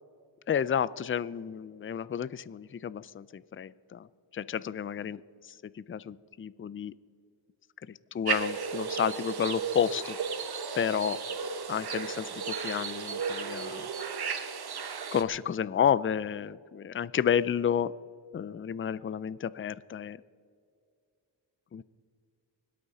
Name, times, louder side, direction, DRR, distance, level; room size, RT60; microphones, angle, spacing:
voice 1, 0.5-4.1 4.3-5.2 5.8-6.9 8.1-10.2 10.7-11.2 11.7-13.9 15.1-17.9 18.3-20.2 21.7-21.8, left 8 dB, 25° left, 18 dB, 0.4 m, -31 dB
sound 1, 8.2-15.2, right 5 dB, 50° right, 1.2 m, -34 dB
25.0 x 8.7 x 4.1 m, 2.3 s
cardioid pair, 60°, 48 cm